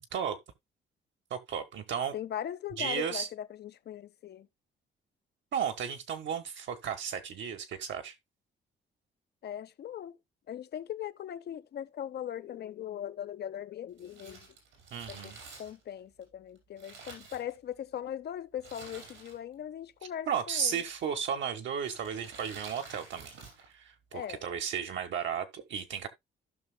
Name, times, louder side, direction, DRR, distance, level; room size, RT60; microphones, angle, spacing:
voice 1, 1.3-2.1 2.8-3.3 5.5-8.1 14.9-15.4 20.3-23.3 23.7-26.1, right 7 dB, 70° right, 1.3 m, -34 dB
voice 2, 2.1-4.5 9.4-10.2 10.5-14.5 15.1-15.3 15.6-20.8 24.1-24.4, left 10 dB, 55° left, 0.7 m, -39 dB
Crumpling crinkling, 13.9-17.9 18.6-19.6 19.9-20.0 20.8-21.1 21.8-23.7 24.0-24.1, right 4 dB, 90° right, 5.5 m, -50 dB
15.0 x 5.8 x 2.2 m
cardioid pair, 90°, 20 cm